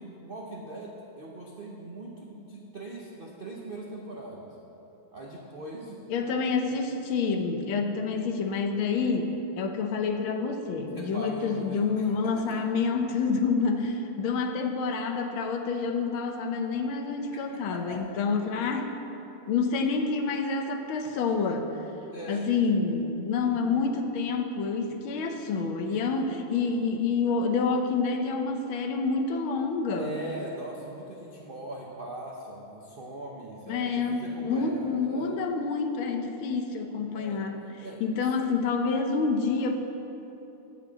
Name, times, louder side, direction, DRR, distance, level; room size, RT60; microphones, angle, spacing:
voice 1, 0.0-4.6 5.1-6.3 10.9-12.6 17.7-18.0 22.1-22.5 25.9-26.0 29.9-35.4 37.1-37.4 37.8-38.0, right 1 dB, 85° right, -2 dB, 0.4 m, -41 dB
voice 2, 6.1-18.9 19.5-21.7 22.3-30.2 33.7-37.6 38.0-39.7, left 4 dB, 75° left, 5 dB, 1.6 m, -28 dB
8.1 x 7.8 x 7.4 m, 3.0 s
omnidirectional pair, 2.4 m